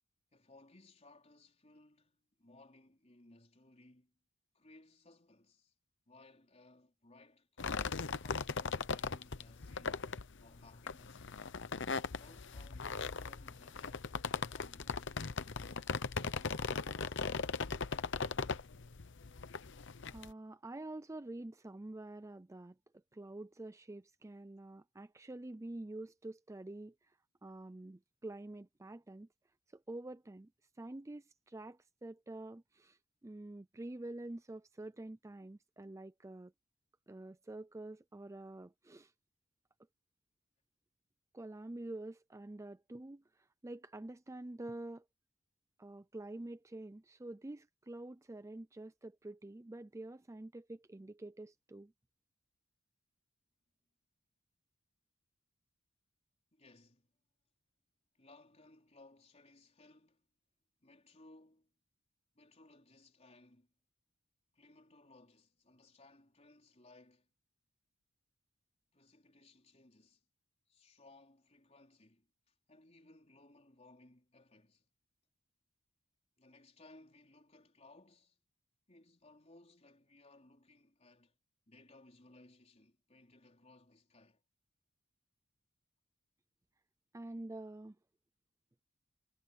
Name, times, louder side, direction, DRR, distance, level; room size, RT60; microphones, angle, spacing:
voice 1, 0.3-4.2 4.5-5.7 6.1-10.1 10.4-11.3 12.1-17.2 56.5-57.1 58.1-60.3 60.8-61.7 62.3-63.7 64.5-67.3 68.9-70.2 70.7-74.9 76.4-78.4 78.9-81.4 81.7-84.4, left 2 dB, 30° left, 4.3 m, -62 dB
sound 1, 7.6-20.3, left 5 dB, 60° left, 0.9 m, -39 dB
voice 2, 20.1-22.8 23.1-29.3 29.7-30.5 30.8-36.5 37.1-39.1 41.3-45.0 45.8-51.9 87.1-88.0, right 2 dB, 15° right, 0.4 m, -47 dB
head